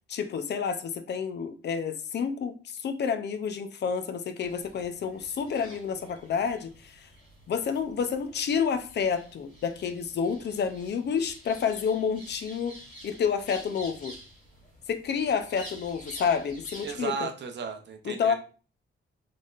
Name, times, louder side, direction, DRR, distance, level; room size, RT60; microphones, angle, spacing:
voice 1, 0.1-7.1 7.5-12.8 13.0-14.1 14.9-17.3 18.0-18.3, left 6 dB, 55° left, 9 dB, 0.5 m, -29 dB
sound 1, 4.4-17.0, right 1 dB, 35° left, 1.9 m, -49 dB
voice 2, 16.8-18.3, right 5 dB, 55° right, 6 dB, 0.6 m, -34 dB
4.1 x 3.3 x 2.4 m, 0.36 s
wide cardioid pair, 170°, 21 cm